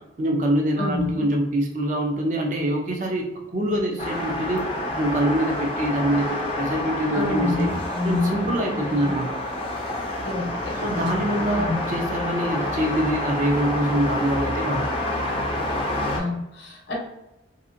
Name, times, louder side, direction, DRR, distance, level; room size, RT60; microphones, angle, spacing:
voice 1, 0.0-3.3 3.5-6.3 6.5-7.7 8.0-9.3 10.8-14.8, right 1 dB, 40° right, 1 dB, 0.5 m, -24 dB
voice 2, 0.8-1.3 3.7-3.8 7.1-8.8 10.2-11.8 16.2-17.0, left 2 dB, 65° left, -2 dB, 0.7 m, -28 dB
sound 1, 4.0-16.2, left 1 dB, 30° left, 0.4 m, -28 dB
2.7 x 2.5 x 2.5 m, 0.91 s
head